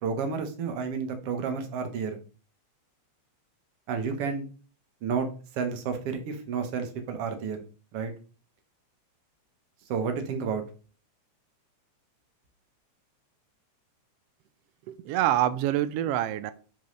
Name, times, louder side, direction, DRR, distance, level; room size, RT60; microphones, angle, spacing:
voice 1, 0.0-2.2 3.9-4.5 5.0-5.3 5.5-7.6 7.9-8.1 9.9-10.6, right 6 dB, 60° right, 6 dB, 1.9 m, -31 dB
voice 2, 14.9-16.5, right 13 dB, 90° right, 12 dB, 1.3 m, -26 dB
10.5 x 4.6 x 3.2 m, 0.38 s
omnidirectional pair, 3.3 m